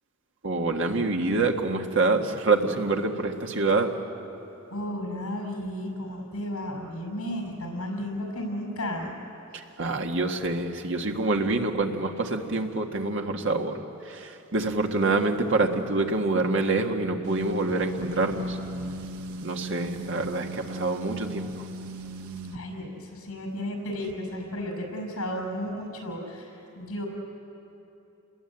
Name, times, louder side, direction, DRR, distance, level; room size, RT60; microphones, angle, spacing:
voice 1, 0.4-4.0 9.8-18.6 19.4-21.5, right 3 dB, 60° right, 3 dB, 1.7 m, -26 dB
voice 2, 4.7-9.1 22.5-26.5 26.7-27.1, left 1 dB, 80° left, 2 dB, 6.5 m, -33 dB
sound 1, 17.2-22.6, right 1 dB, 85° right, 1.2 m, -37 dB
29.5 x 21.0 x 8.9 m, 2.9 s
head